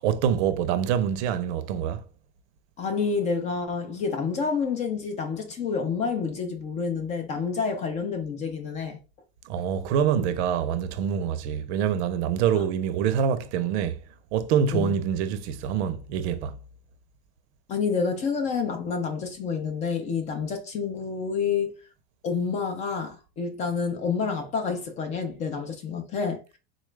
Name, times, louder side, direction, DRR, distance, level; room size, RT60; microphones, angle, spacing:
voice 1, 0.0-2.0 9.5-14.0 14.3-16.6, right 8 dB, 90° right, 0.6 m, -25 dB
voice 2, 2.8-9.0 12.5-12.6 14.7-14.9 17.7-21.7 22.2-26.4, left 5 dB, 20° left, 0.4 m, -28 dB
4.0 x 2.3 x 3.1 m
cardioid pair, 175°, 33 cm